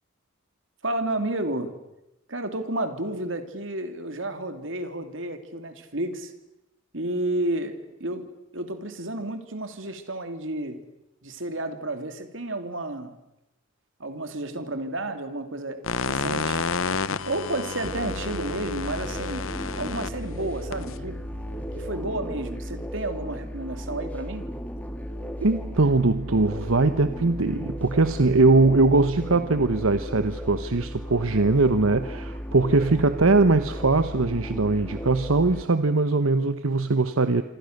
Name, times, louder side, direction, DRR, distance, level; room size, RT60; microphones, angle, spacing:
voice 1, 0.8-1.7 2.3-6.3 6.9-8.3 8.5-10.8 11.2-13.1 14.0-16.6 17.3-19.5 19.8-21.2 21.8-24.5, right 1 dB, 70° right, 7 dB, 2.9 m, -31 dB
sound 1, 15.8-21.9, left 5 dB, 80° left, 0.9 m, -31 dB
sound 2, 17.8-35.6, equal, 5° left, 1.9 m, -35 dB
voice 2, 25.4-37.4, right 3 dB, 90° right, 10 dB, 1.0 m, -21 dB
26.5 x 26.0 x 6.7 m, 0.90 s
head